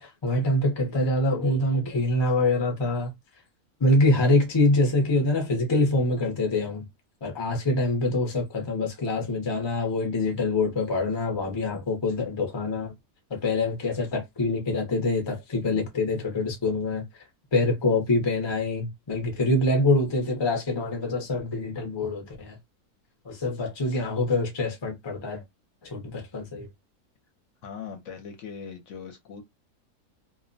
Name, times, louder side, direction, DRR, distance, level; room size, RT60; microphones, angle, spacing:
voice 1, 0.0-3.1 3.8-6.9 7.2-12.9 13.3-22.6 23.2-25.4 25.8-26.7, left 2 dB, 35° left, 0.4 m, -25 dB
voice 2, 27.6-29.4, left 6 dB, 65° left, 0.8 m, -40 dB
2.4 x 2.1 x 2.5 m
omnidirectional pair, 1.6 m